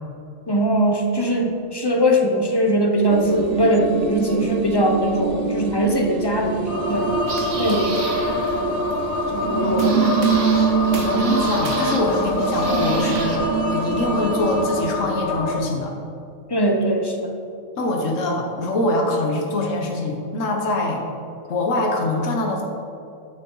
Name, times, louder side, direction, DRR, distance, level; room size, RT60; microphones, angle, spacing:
voice 1, 0.5-7.1 7.6-8.0 8.6-9.0 9.3-10.5 16.5-17.4, equal, 20° left, 2 dB, 0.7 m, -21 dB
sound 1, 3.1-14.7, right 7 dB, 60° right, 0.6 m, -25 dB
sound 2, 6.7-15.6, left 3 dB, 85° left, 1.4 m, -26 dB
sound 3, 6.9-13.4, right 3 dB, 85° right, 1.6 m, -32 dB
voice 2, 10.9-15.9 17.8-21.0 21.5-22.6, left 2 dB, 70° left, 1 dB, 1.5 m, -24 dB
12.0 x 6.9 x 3.9 m, 2.6 s
omnidirectional pair, 1.4 m